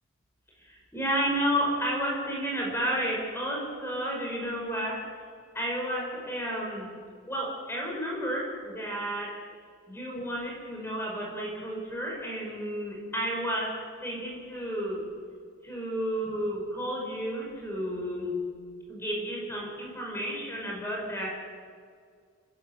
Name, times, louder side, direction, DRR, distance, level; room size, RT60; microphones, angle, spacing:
voice 1, 0.6-5.1 5.5-6.9 7.3-9.4 9.9-15.0 15.6-18.4 18.9-21.3, equal, 10° left, -2 dB, 5.5 m, -32 dB
29.5 x 15.5 x 9.1 m, 2.1 s
head